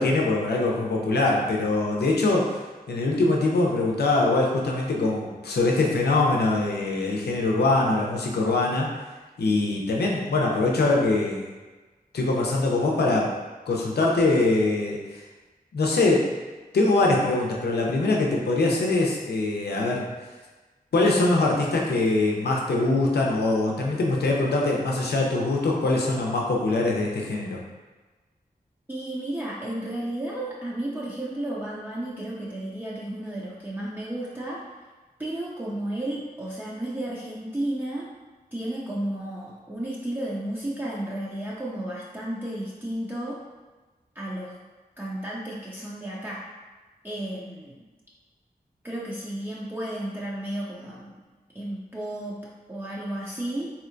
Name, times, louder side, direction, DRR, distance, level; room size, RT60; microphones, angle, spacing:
voice 1, 0.0-2.6 2.9-8.9 9.4-11.4 12.1-13.3 13.7-15.2 15.7-16.3 16.7-20.1 20.9-27.6, left 2 dB, 90° left, -2 dB, 0.6 m, -23 dB
voice 2, 28.9-34.6 35.2-38.1 38.5-43.4 44.1-44.6 45.0-46.5 47.0-47.8 48.8-51.2 51.5-53.7, right 1 dB, 15° right, -7 dB, 0.5 m, -33 dB
3.3 x 2.8 x 2.5 m, 1.3 s
cardioid pair, 50°, 16 cm